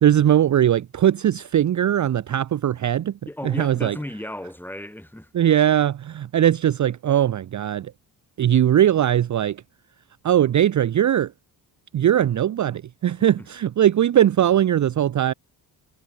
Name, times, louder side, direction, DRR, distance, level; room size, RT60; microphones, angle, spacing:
voice 1, 0.0-3.1 3.4-4.0 5.3-7.9 8.4-9.6 10.2-11.3 11.9-15.3, right 11 dB, 45° right, 0.6 m, -20 dB
voice 2, 3.3-5.3 13.4-13.5, left 1 dB, 5° left, 7.4 m, -34 dB
wide cardioid pair, 135°, 41 cm